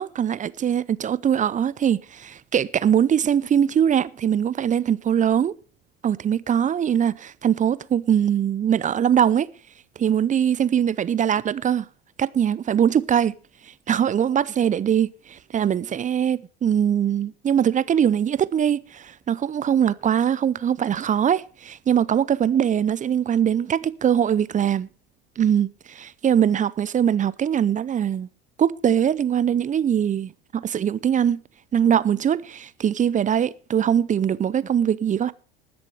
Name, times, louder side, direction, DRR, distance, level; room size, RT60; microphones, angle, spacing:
voice 1, 0.0-5.5 6.0-9.5 10.0-11.9 12.2-13.3 13.9-24.9 25.4-28.3 28.6-31.4 31.7-35.3, right 9 dB, 25° right, 0.6 m, -22 dB
19.5 x 7.0 x 4.6 m
hypercardioid pair, 70°, 30 cm